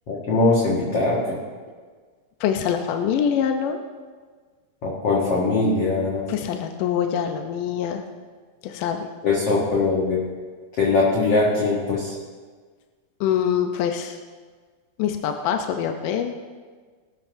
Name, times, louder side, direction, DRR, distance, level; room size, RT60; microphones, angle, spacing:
voice 1, 0.1-1.2 4.8-6.2 9.2-10.2 10.8-12.1, left 3 dB, 50° left, -4 dB, 2.1 m, -21 dB
voice 2, 2.4-3.8 6.3-8.0 8.6-9.1 13.2-14.2 15.0-16.4, left 8 dB, 75° left, 5 dB, 2.0 m, -24 dB
20.5 x 13.0 x 2.7 m, 1.5 s
omnidirectional pair, 4.5 m